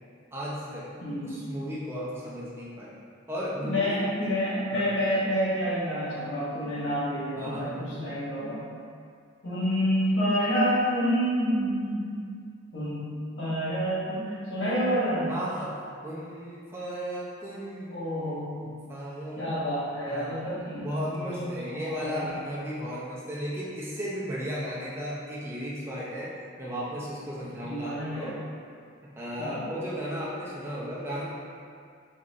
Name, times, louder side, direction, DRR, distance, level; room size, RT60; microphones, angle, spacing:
voice 1, 0.3-0.9 1.2-3.0 3.3-4.4 4.7-4.9 7.4-7.8 15.3-18.0 18.6-19.5 20.1-20.4 20.8-28.4 29.1-31.2, equal, 10° right, -7 dB, 0.6 m, -35 dB
voice 2, 1.0-1.4 3.6-8.7 9.4-12.2 12.7-15.3 17.9-18.7 19.4-22.3 27.6-28.3 29.4-29.7, equal, 65° left, -9 dB, 1.3 m, -28 dB
4.3 x 4.0 x 2.5 m, 2.2 s
head